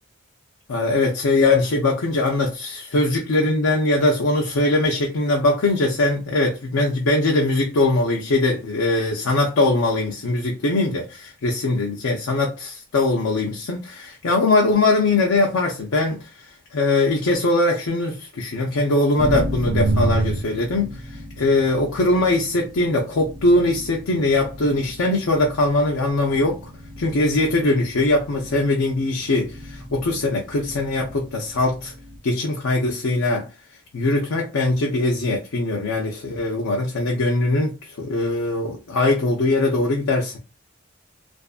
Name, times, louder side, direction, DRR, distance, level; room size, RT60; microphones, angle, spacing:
voice 1, 0.7-16.5 16.7-26.7 27.0-31.9 32.2-33.5 33.9-40.4, left 2 dB, 90° left, 0.5 m, -21 dB
sound 1, 19.2-32.2, right 1 dB, 20° right, 0.5 m, -31 dB
2.5 x 2.4 x 2.3 m
head